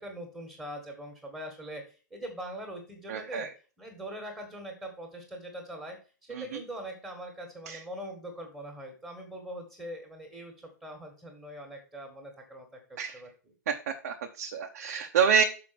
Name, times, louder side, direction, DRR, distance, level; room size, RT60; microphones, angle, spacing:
voice 1, 0.0-1.8 2.1-3.5 3.8-6.0 6.2-10.5 10.8-13.3, equal, 5° right, 0 dB, 1.9 m, -42 dB
voice 2, 3.1-3.5 6.3-6.6 7.7-7.8 13.0-13.2 13.7-15.4, right 7 dB, 55° right, 3 dB, 1.1 m, -28 dB
6.2 x 5.8 x 5.9 m, 0.36 s
hypercardioid pair, 155°, 10 cm